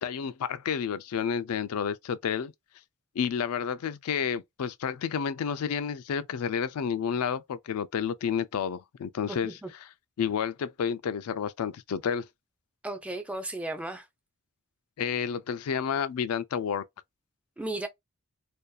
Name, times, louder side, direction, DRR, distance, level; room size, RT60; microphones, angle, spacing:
voice 1, 0.0-2.5 3.2-9.9 10.2-12.3 15.0-16.8, left 7 dB, 80° left, 0.4 m, -30 dB
voice 2, 9.3-9.7 12.8-14.1 17.6-17.9, right 2 dB, 5° right, 0.3 m, -35 dB
2.6 x 2.3 x 2.2 m
head